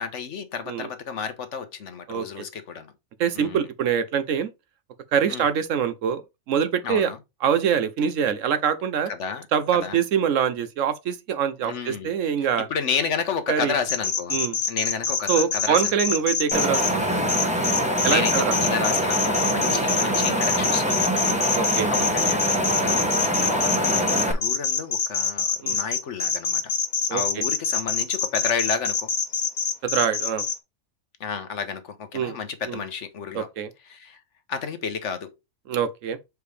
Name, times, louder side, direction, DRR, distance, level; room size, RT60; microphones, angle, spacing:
voice 1, 0.0-2.9 3.3-3.7 5.3-5.4 6.8-7.2 9.1-9.5 9.7-10.0 11.6-12.1 12.4-14.4 14.7-16.2 18.1-21.1 21.5-23.0 23.5-26.6 27.1-29.1 31.2-33.5 33.9-34.2 34.5-35.3, left 6 dB, 60° left, 1.1 m, -31 dB
voice 2, 2.1-2.4 3.2-4.5 5.1-6.2 6.5-7.1 7.4-9.1 9.5-12.7 13.5-13.7 14.3-14.6 15.3-17.0 18.0-18.5 19.6-19.8 21.5-21.9 22.8-23.0 25.6-25.8 27.1-27.4 29.8-30.4 32.1-32.4 32.7-32.8 33.3-33.7 35.7-36.2, right 8 dB, 70° right, 1.0 m, -24 dB
sound 1, 13.9-16.9 17.3-30.5, left 6 dB, 90° left, 1.6 m, -25 dB
Wind, 16.5-24.3, equal, 5° right, 1.0 m, -24 dB
6.6 x 4.7 x 3.3 m
omnidirectional pair, 1.5 m